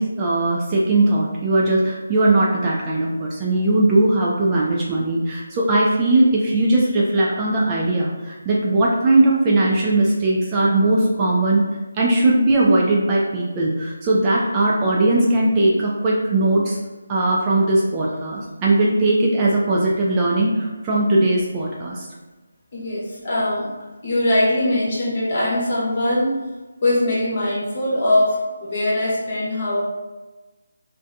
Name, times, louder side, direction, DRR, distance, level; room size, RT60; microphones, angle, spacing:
voice 1, 0.0-11.6 11.9-16.8 17.1-22.1 23.4-23.5, right 2 dB, 20° right, -4 dB, 0.3 m, -19 dB
voice 2, 22.7-23.6 24.0-26.4 26.8-29.8, left 1 dB, 40° left, -6 dB, 1.0 m, -21 dB
2.6 x 2.2 x 2.5 m, 1.2 s
figure-of-eight pair, 165°, 0 cm